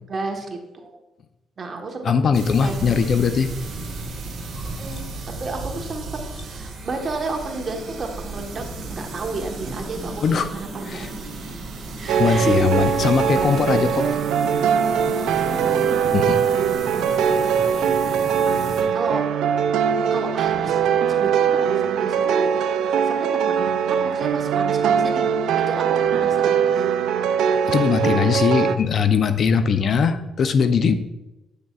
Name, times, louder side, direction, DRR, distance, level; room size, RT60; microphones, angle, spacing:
voice 1, 0.1-1.0 1.6-2.1 2.6-2.9 4.8-5.1 5.4-11.2 12.0-13.0 15.1-16.0 18.8-19.2 20.1-20.8 21.2-22.5 22.9-25.3 25.7-26.9, right 3 dB, 40° right, 2 dB, 1.2 m, -32 dB
voice 2, 2.0-3.5 4.6-4.8 10.2-10.5 10.9-11.1 12.2-14.1 16.1-16.4 27.7-30.9, left 6 dB, 55° left, 10 dB, 0.5 m, -20 dB
sound 1, 2.3-18.8, right 2 dB, 65° right, 1.7 m, -34 dB
sound 2, 12.1-28.8, right 7 dB, 85° right, 0.3 m, -21 dB
8.5 x 6.5 x 2.4 m, 0.97 s
cardioid pair, 90°, 0 cm